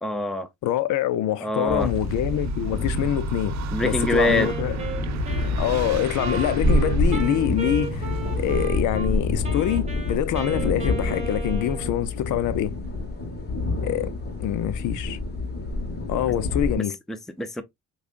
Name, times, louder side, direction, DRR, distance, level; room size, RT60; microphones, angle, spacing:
voice 1, 0.0-0.5 1.4-1.9 3.7-4.5 16.8-17.6, left 1 dB, ahead, 0.5 m, -25 dB
voice 2, 0.6-4.7 5.6-8.1 8.4-12.7 13.8-14.1 14.4-15.2 16.1-17.0, left 12 dB, 80° left, 0.6 m, -25 dB
sound 1, 1.7-16.8, left 2 dB, 35° left, 1.2 m, -28 dB
sound 2, 1.8-8.7, right 5 dB, 65° right, 0.5 m, -31 dB
Wind instrument woodwind instrument, 4.3-9.1 9.4-12.1, right 4 dB, 20° right, 1.2 m, -35 dB
4.9 x 2.3 x 2.4 m
cardioid pair, 90°, 30 cm